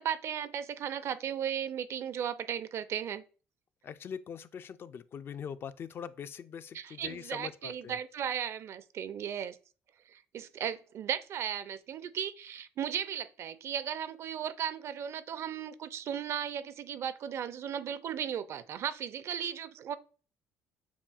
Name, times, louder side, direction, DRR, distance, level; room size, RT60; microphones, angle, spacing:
voice 1, 0.0-3.2 6.7-9.6 10.1-19.9, right 9 dB, 55° right, 0.4 m, -36 dB
voice 2, 3.8-8.0, left 7 dB, 45° left, 0.4 m, -42 dB
7.0 x 2.7 x 2.4 m
supercardioid pair, 75°, 5 cm